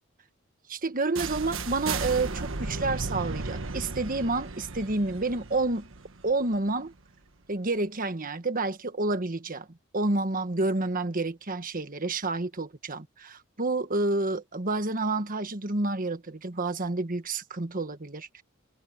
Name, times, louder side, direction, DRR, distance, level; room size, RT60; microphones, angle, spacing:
voice 1, 0.7-5.9 6.2-6.9 7.5-9.7 9.9-18.4, right 2 dB, 40° right, 1.4 m, -29 dB
sound 1, 1.2-7.0, right 3 dB, 65° right, 1.4 m, -35 dB
head